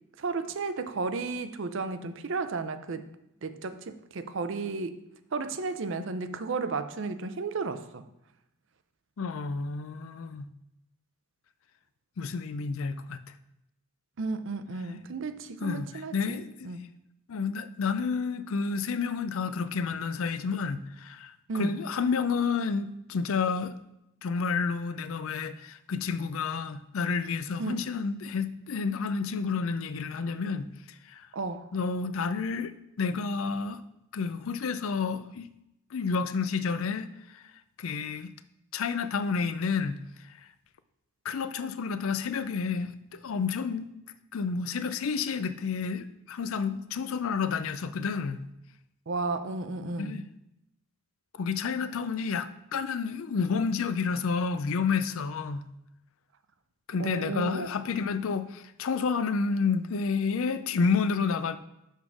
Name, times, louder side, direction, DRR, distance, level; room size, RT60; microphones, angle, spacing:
voice 1, 0.2-3.1 3.4-5.0 5.3-8.0 14.2-16.4 16.6-16.8 21.5-21.8 27.6-27.8 31.3-31.7 49.1-50.2 57.0-57.7, right 3 dB, 55° right, 0.5 m, -33 dB
voice 2, 9.2-10.5 12.2-13.2 15.6-16.7 17.3-23.7 24.2-30.7 31.1-31.3 31.7-33.8 34.1-35.5 35.9-37.1 37.8-38.3 38.7-40.0 41.2-43.9 44.3-48.4 50.0-50.2 51.4-55.6 56.9-61.6, left 5 dB, 65° left, 0.4 m, -30 dB
7.1 x 3.6 x 6.1 m
head